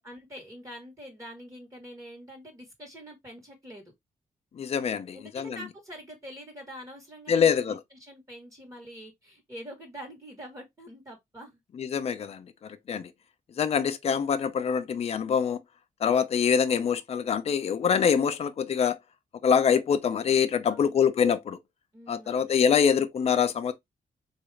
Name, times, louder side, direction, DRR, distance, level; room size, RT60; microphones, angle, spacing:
voice 1, 0.0-3.8 5.1-11.6 20.6-21.0 21.9-22.7, equal, 20° right, 1.1 m, -45 dB
voice 2, 4.5-5.6 7.3-7.8 11.7-13.1 13.6-15.6 16.0-19.0 19.4-21.6 22.1-23.7, left 7 dB, 45° left, 0.5 m, -25 dB
4.0 x 2.3 x 3.1 m
wide cardioid pair, 145°, 15 cm